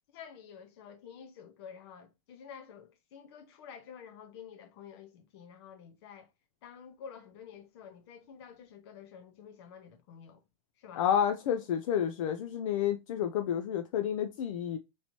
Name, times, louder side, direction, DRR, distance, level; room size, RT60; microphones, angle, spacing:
voice 1, 0.1-6.3 6.6-10.4 10.8-11.0, left 7 dB, 50° left, 0.8 m, -50 dB
voice 2, 11.0-14.8, left 9 dB, 70° left, 0.4 m, -30 dB
3.1 x 2.8 x 4.2 m
supercardioid pair, 175°, 17 cm